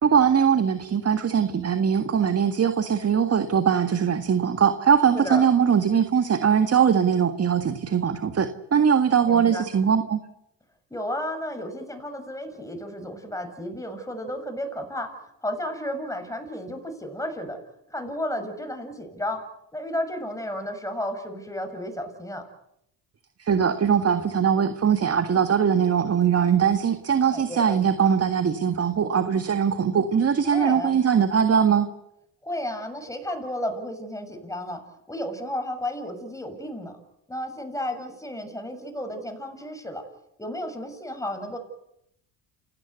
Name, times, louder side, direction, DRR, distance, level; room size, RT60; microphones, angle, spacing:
voice 1, 0.0-10.2 23.4-31.9, right 7 dB, 35° right, 8 dB, 1.8 m, -21 dB
voice 2, 5.1-5.4 9.3-9.7 10.9-15.1 15.4-17.6 17.9-19.4 19.7-22.4 27.3-27.8 30.4-31.0 32.4-34.8 35.1-36.9 37.3-40.0 40.4-41.6, left 1 dB, 10° left, 6 dB, 7.2 m, -32 dB
29.5 x 17.0 x 8.2 m, 0.79 s
supercardioid pair, 85°, 41 cm